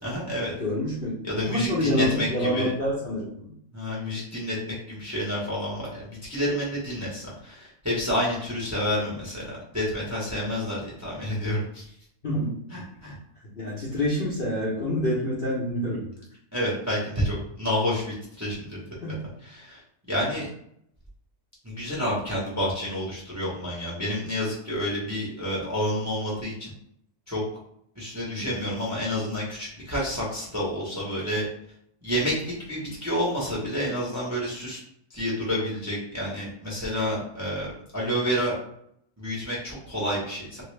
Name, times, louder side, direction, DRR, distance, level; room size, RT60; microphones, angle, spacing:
voice 1, 0.0-0.5 1.2-2.7 3.7-11.8 12.7-13.2 16.5-18.8 19.4-19.8 20.1-20.5 21.6-26.7 27.3-27.4 27.9-31.5 32.0-34.8 35.1-38.6 39.2-40.6, equal, 15° right, -5 dB, 0.7 m, -29 dB
voice 2, 0.6-3.5 12.2-12.6 13.6-16.1 19.0-19.2 28.3-28.5, left 1 dB, 45° left, -7 dB, 0.8 m, -27 dB
3.0 x 2.7 x 3.2 m, 0.71 s
omnidirectional pair, 1.7 m